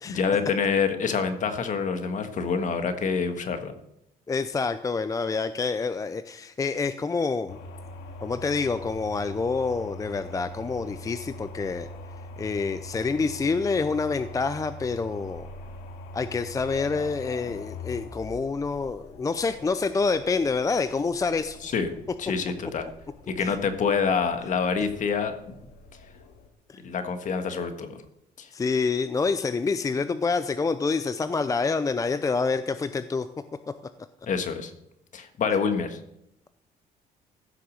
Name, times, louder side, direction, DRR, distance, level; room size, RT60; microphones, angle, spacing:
voice 1, 0.1-3.7 21.6-21.9 22.2-22.9 23.3-25.3 26.8-28.0 28.4-28.5 34.3-34.7 35.1-36.0, left 5 dB, 50° left, 8 dB, 1.5 m, -26 dB
voice 2, 4.3-7.6 8.2-11.9 12.4-15.5 16.1-21.6 23.4-23.6 26.7-26.8 28.5-33.3, left 4 dB, 20° left, 11 dB, 0.5 m, -27 dB
sound 1, 7.5-26.5, left 2 dB, 85° left, 1.9 m, -43 dB
15.0 x 6.7 x 6.5 m, 0.83 s
cardioid pair, 110°, 17 cm